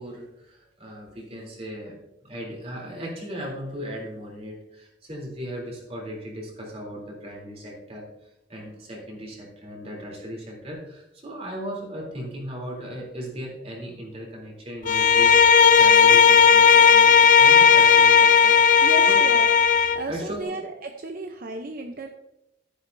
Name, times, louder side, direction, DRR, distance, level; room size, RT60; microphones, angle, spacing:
voice 1, 0.0-8.1 8.5-19.2 20.1-20.6, equal, 35° right, -1 dB, 3.3 m, -37 dB
Bowed string instrument, 14.8-20.0, left 6 dB, 45° left, 0.5 m, -15 dB
voice 2, 18.8-22.1, right 2 dB, 55° right, 4 dB, 0.7 m, -34 dB
12.0 x 10.0 x 2.7 m, 0.87 s
head